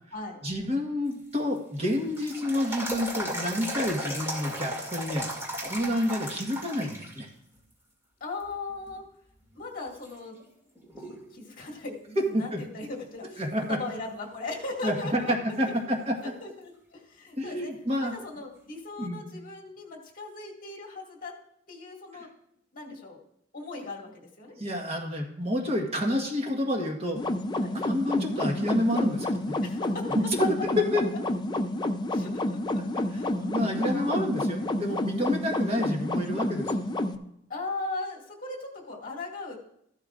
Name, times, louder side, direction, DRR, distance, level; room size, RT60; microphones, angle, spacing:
voice 1, 0.4-5.3 5.6-7.3 12.2-12.6 13.4-13.8 14.8-16.3 17.4-18.1 19.0-19.2 24.6-27.2 27.8-29.5 30.3-30.4 30.6-31.0 32.8-32.9 33.4-36.7, left 1 dB, 35° right, 1 dB, 1.4 m, -29 dB
sound 1, 1.1-7.2 7.6-7.7 8.4-8.9 9.5-9.6 10.0-11.3 11.6-11.7 15.0-15.1 18.1-18.2, equal, 15° right, 2.5 m, -36 dB
voice 2, 8.2-9.0 9.5-10.4 11.0-13.4 13.7-15.3 16.4-17.7 18.0-21.4 21.7-22.3 22.7-23.2 23.5-24.6 25.8-25.9 27.6-27.8 29.6-30.1 30.4-30.5 32.1-32.8 33.1-33.3 33.8-34.3 35.2-35.4 37.5-39.6, left 3 dB, 45° left, -2 dB, 2.2 m, -38 dB
sound 2, 27.2-37.2, left 1 dB, 25° left, 0.5 m, -29 dB
14.0 x 12.0 x 2.5 m, 0.73 s
head